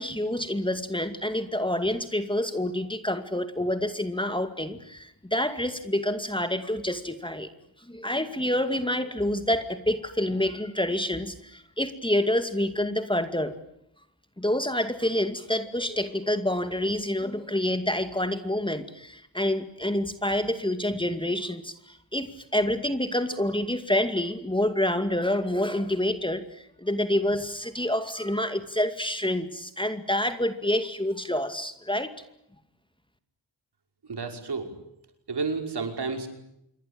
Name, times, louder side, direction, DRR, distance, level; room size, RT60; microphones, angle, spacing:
voice 1, 0.0-7.5 7.9-13.6 14.4-32.1, left 1 dB, 10° left, 9 dB, 2.3 m, -27 dB
voice 2, 34.0-34.8 35.3-36.3, right 4 dB, 60° right, 5 dB, 5.5 m, -31 dB
27.5 x 23.0 x 8.9 m, 0.79 s
wide cardioid pair, 85°, 44 cm